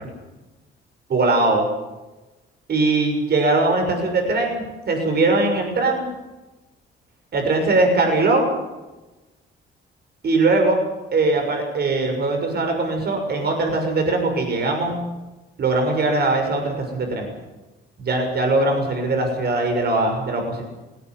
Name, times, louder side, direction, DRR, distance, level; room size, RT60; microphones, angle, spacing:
voice 1, 1.1-1.6 2.7-6.1 7.3-8.5 10.2-10.8 11.1-15.0 15.6-17.3 18.1-20.6, right 2 dB, 55° right, 4 dB, 6.7 m, -20 dB
19.0 x 18.5 x 9.6 m, 1.1 s
cardioid pair, 90°, 20 cm